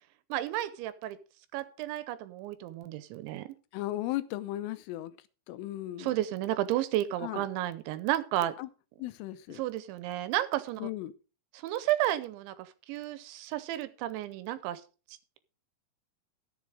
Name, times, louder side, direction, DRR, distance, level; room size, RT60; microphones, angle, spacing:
voice 1, 0.3-1.2 1.5-3.5 6.0-8.5 9.6-10.8 11.5-14.8, right 14 dB, 80° right, 2.9 m, -32 dB
voice 2, 3.7-5.1 5.5-6.2 7.2-7.5 8.6-8.7 9.0-9.6 10.8-11.1, left 15 dB, 90° left, 3.4 m, -36 dB
13.0 x 7.4 x 4.8 m
omnidirectional pair, 5.6 m